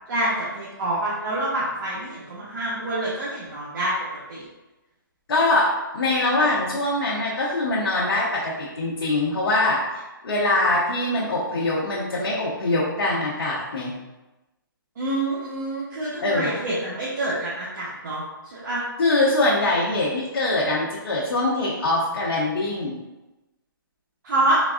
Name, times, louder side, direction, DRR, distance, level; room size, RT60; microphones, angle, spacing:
voice 1, 0.1-3.9 4.3-4.4 15.0-18.8 24.2-24.6, right 1 dB, 55° right, -7 dB, 1.0 m, -27 dB
voice 2, 5.3-13.9 16.2-16.6 19.0-23.0, left 2 dB, 75° left, -6 dB, 0.9 m, -23 dB
4.0 x 3.5 x 2.4 m, 1.1 s
hypercardioid pair, 150°, 12 cm